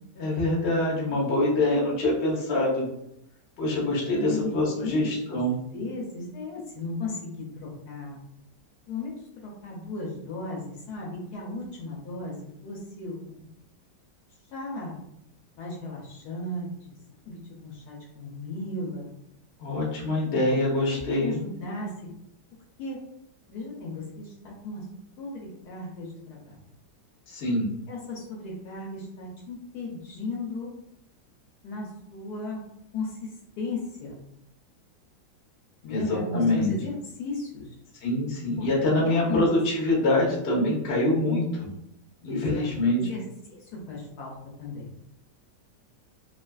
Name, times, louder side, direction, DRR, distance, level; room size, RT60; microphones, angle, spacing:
voice 1, 0.2-2.9 3.6-5.6 19.6-21.4 27.3-27.7 35.9-36.7 38.0-41.7 42.2-43.0, left 1 dB, 50° left, -3 dB, 0.9 m, -25 dB
voice 2, 4.2-8.2 8.9-12.3 12.6-13.5 14.5-15.0 15.6-17.0 17.3-19.1 20.4-22.1 22.8-23.0 23.5-24.9 25.2-26.6 27.9-30.7 31.6-32.6 32.9-33.3 33.6-34.2 35.8-37.7 38.6-38.7 39.0-39.5 42.3-42.6 42.9-45.0, left 2 dB, 70° left, -3 dB, 1.1 m, -36 dB
2.7 x 2.4 x 2.2 m, 0.79 s
omnidirectional pair, 1.8 m